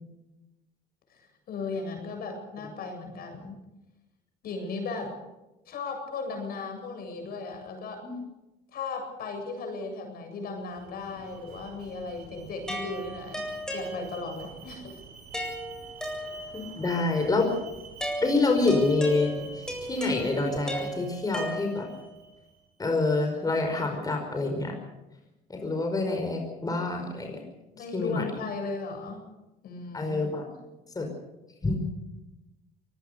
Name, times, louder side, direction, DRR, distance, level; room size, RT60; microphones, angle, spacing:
voice 1, 1.5-3.6 4.4-5.1 5.7-8.0 8.7-13.4 13.7-15.0 27.8-29.2 29.6-30.3, left 4 dB, 65° left, 5 dB, 7.9 m, -36 dB
Alarm, 10.5-22.6, right 4 dB, 65° right, 6.9 m, -48 dB
sound 1, 12.7-14.5 15.3-16.8 18.0-22.1, right 1 dB, 5° left, 7.7 m, -36 dB
voice 2, 16.5-17.5 18.2-21.9 22.8-24.7 25.5-27.4 27.8-28.2 29.9-30.4 30.9-31.1 31.6-31.8, left 3 dB, 20° left, 3 dB, 5.1 m, -27 dB
24.5 x 19.0 x 6.8 m, 0.98 s
cardioid pair, 110°, 17 cm